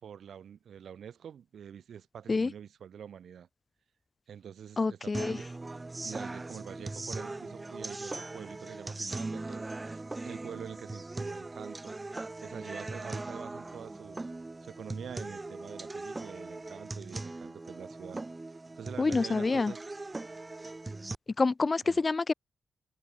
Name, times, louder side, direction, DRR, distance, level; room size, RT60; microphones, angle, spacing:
voice 1, 0.0-3.5 4.3-5.5 6.0-11.9 12.4-14.2 14.6-18.2 18.8-19.8 21.8-22.0, right 8 dB, 80° right, 1.3 m, -46 dB
voice 2, 4.8-5.4 19.0-19.7 21.4-22.3, left 3 dB, 40° left, 0.6 m, -27 dB
sound 1, 5.1-21.2, right 2 dB, 30° right, 1.0 m, -40 dB
cardioid pair, 60°, 0 cm